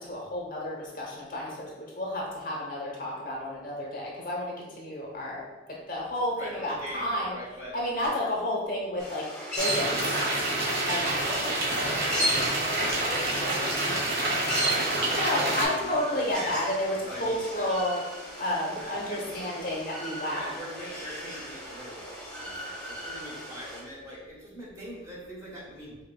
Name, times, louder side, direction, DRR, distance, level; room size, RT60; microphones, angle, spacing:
voice 1, 0.0-7.3 7.7-9.2 9.6-9.9 10.8-11.3 15.1-18.0 18.4-20.5, left 1 dB, 50° left, -3 dB, 1.0 m, -31 dB
voice 2, 6.4-7.7 8.0-8.1 11.2-11.5 11.7-16.6 17.0-17.7 18.7-19.8 20.3-26.0, equal, 20° right, -6 dB, 1.2 m, -42 dB
sound 1, 9.0-23.8, equal, 5° left, 1.1 m, -37 dB
sound 2, 9.6-15.6, right 2 dB, 55° right, 1.1 m, -28 dB
sound 3, 11.8-16.7, left 3 dB, 35° left, 0.4 m, -44 dB
5.2 x 2.9 x 2.3 m, 1.2 s
head